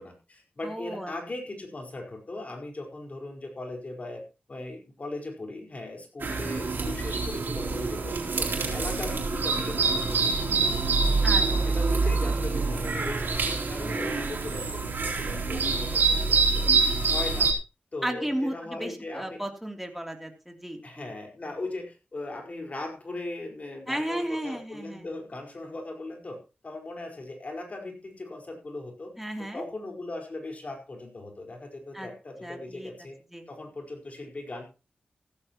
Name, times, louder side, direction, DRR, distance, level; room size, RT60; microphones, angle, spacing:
voice 1, 0.0-4.2 4.5-10.7 11.1-16.6 17.0-17.5 17.9-19.4 20.8-26.4 26.6-29.1 29.5-33.1 33.5-34.6, left 2 dB, 45° left, 3 dB, 4.7 m, -38 dB
voice 2, 0.6-1.1 11.2-11.4 18.0-21.1 23.9-25.0 29.2-29.6 31.9-32.1 32.4-32.9 33.3-33.4, right 1 dB, 5° right, 3 dB, 3.1 m, -34 dB
sound 1, 6.2-17.5, right 4 dB, 75° right, 4.0 m, -26 dB
15.5 x 14.0 x 3.0 m, 0.30 s
wide cardioid pair, 85°, 3 cm